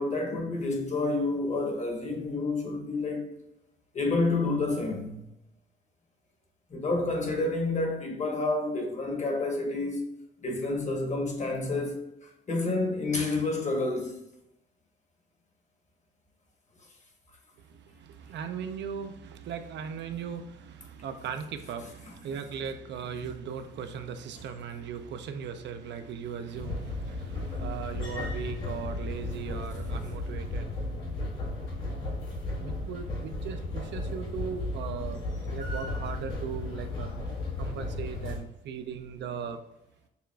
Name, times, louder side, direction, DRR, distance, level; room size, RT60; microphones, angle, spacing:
voice 1, 0.0-3.3 3.9-5.2 6.7-10.1 10.4-12.0 12.5-14.1, left 2 dB, 35° left, 1.0 m, -29 dB
voice 2, 17.6-30.9 32.6-35.2 35.5-37.1 37.6-39.6, right 7 dB, 65° right, 0.4 m, -38 dB
sound 1, 26.5-38.4, left 2 dB, 80° left, 1.4 m, -34 dB
6.7 x 2.3 x 2.3 m
cardioid pair, 90°, 20 cm